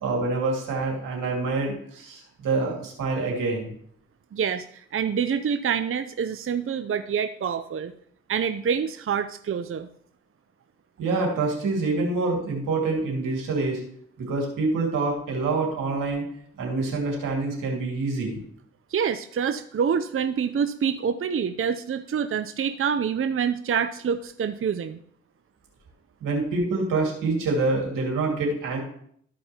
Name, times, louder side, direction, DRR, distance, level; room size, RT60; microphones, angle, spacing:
voice 1, 0.0-3.7 11.0-13.8 14.2-16.2 16.6-18.4 26.2-28.8, right 3 dB, 85° right, -1 dB, 2.2 m, -26 dB
voice 2, 4.3-7.9 8.3-9.9 18.9-25.0, right 7 dB, 45° right, 8 dB, 0.6 m, -26 dB
13.5 x 5.2 x 2.9 m, 0.64 s
supercardioid pair, 40°, 32 cm